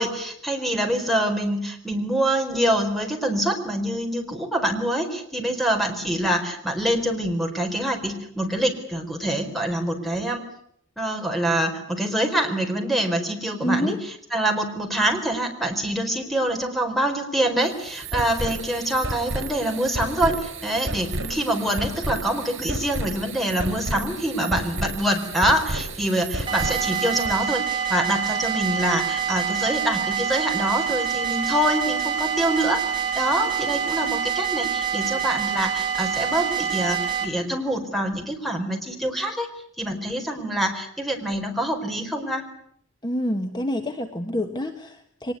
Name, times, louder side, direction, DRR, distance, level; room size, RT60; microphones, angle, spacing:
voice 1, 0.0-10.4 11.0-13.9 14.3-32.8 33.2-39.5 39.8-42.4, right 1 dB, ahead, 3 dB, 4.4 m, -25 dB
voice 2, 13.6-14.0 43.0-45.3, equal, 25° left, 5 dB, 1.5 m, -27 dB
sound 1, 17.6-27.4, right 2 dB, 80° right, 5.6 m, -32 dB
sound 2, 26.5-37.3, right 8 dB, 25° right, 4.6 m, -26 dB
23.5 x 20.0 x 9.6 m, 0.69 s
head